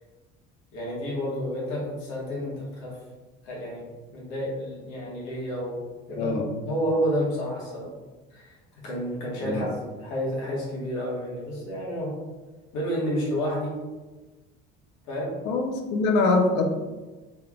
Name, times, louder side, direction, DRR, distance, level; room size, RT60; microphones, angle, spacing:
voice 1, 0.7-3.0 3.4-5.8 6.1-7.9 8.3-8.6 8.8-12.1 12.7-13.7 15.0-15.3, equal, 80° left, -4 dB, 1.4 m, -30 dB
voice 2, 6.2-6.5 9.4-9.6 15.5-16.6, left 3 dB, 65° left, 4 dB, 0.5 m, -23 dB
3.5 x 3.5 x 2.3 m, 1.2 s
cardioid pair, 175°, 20 cm